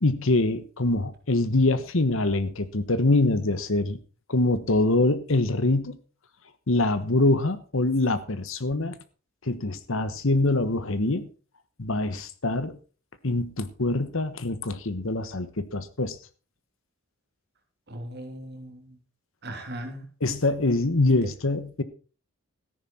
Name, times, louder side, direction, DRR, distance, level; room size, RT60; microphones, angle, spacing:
voice 1, 0.0-4.0 4.3-6.0 6.7-9.0 9.5-11.3 11.8-12.7 13.2-16.2 20.2-21.8, left 2 dB, 65° left, 1.2 m, -24 dB
voice 2, 17.9-19.0 19.4-20.0, right 1 dB, 50° right, 3.0 m, -38 dB
13.5 x 10.5 x 4.3 m
head